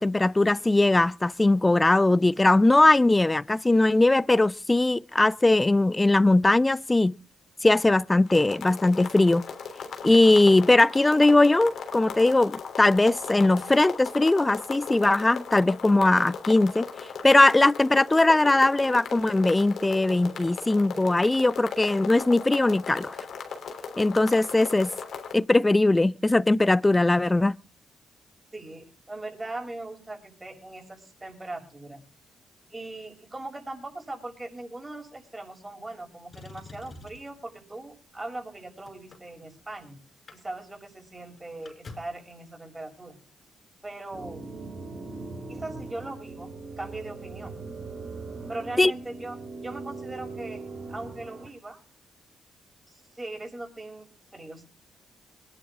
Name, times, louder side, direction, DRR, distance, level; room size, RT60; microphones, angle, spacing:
voice 1, 0.0-7.1 7.6-9.4 10.0-16.9 17.2-23.2 24.0-24.9 25.3-27.6 48.8-48.9, left 2 dB, 20° left, 0.6 m, -20 dB
sound 1, 8.3-25.3, left 6 dB, 65° left, 3.4 m, -38 dB
voice 2, 28.5-32.0 32.7-40.0 40.3-43.2 43.8-44.4 45.5-46.5 46.8-47.6 48.5-51.8 52.9-54.6, right 2 dB, 20° right, 6.8 m, -40 dB
Motor vehicle (road), 36.3-37.4 38.2-39.8 40.1-40.4 40.7-40.8 41.1-42.3 43.3-43.4, left 3 dB, 45° left, 5.2 m, -47 dB
sound 2, 44.1-51.5, right 3 dB, 50° right, 5.7 m, -40 dB
22.0 x 11.0 x 3.7 m
supercardioid pair, 55°, 0 cm